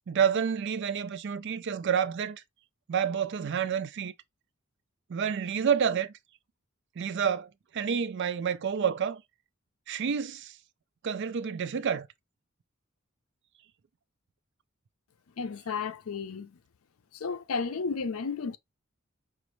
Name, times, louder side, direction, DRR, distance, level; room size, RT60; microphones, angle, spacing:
voice 1, 0.1-2.4 2.9-4.1 5.1-6.1 7.0-9.2 9.9-10.6 11.0-12.1, right 7 dB, 55° right, 0.4 m, -29 dB
voice 2, 15.4-16.6 17.1-18.6, left 5 dB, 80° left, 0.5 m, -33 dB
5.1 x 2.5 x 3.1 m
head